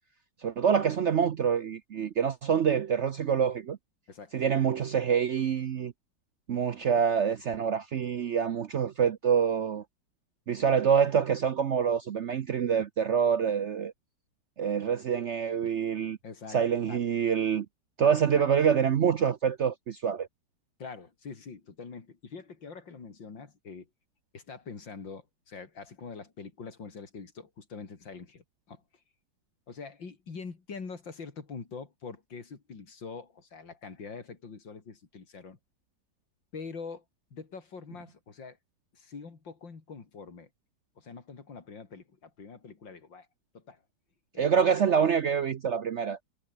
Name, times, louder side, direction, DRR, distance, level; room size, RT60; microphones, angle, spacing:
voice 1, 0.4-3.8 4.3-5.9 6.5-9.8 10.5-13.9 14.6-16.2 16.5-17.7 18.0-20.3 44.4-46.2, right 7 dB, 60° right, 0.7 m, -26 dB
voice 2, 16.2-16.6 16.9-17.0 18.0-18.8 20.8-23.9 24.3-28.8 29.7-35.6 36.5-37.0 37.3-38.6 38.9-40.5 41.0-43.3 43.5-43.8 44.3-44.5, left 5 dB, 85° left, 3.8 m, -44 dB
omnidirectional pair, 2.0 m